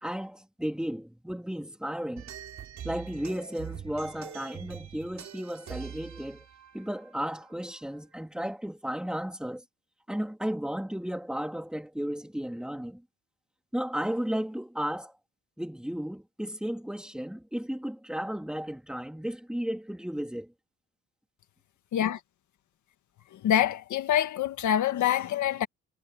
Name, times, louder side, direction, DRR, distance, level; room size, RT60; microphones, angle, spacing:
voice 1, 0.0-2.3 2.8-6.4 6.7-9.6 10.1-13.0 13.7-15.1 15.6-20.5, equal, 5° right, 3.4 m, -34 dB
sound 1, 2.2-8.0, right 9 dB, 65° right, 4.2 m, -44 dB
voice 2, 23.3-25.7, left 10 dB, 75° left, 2.0 m, -26 dB
cardioid pair, 90°, 30 cm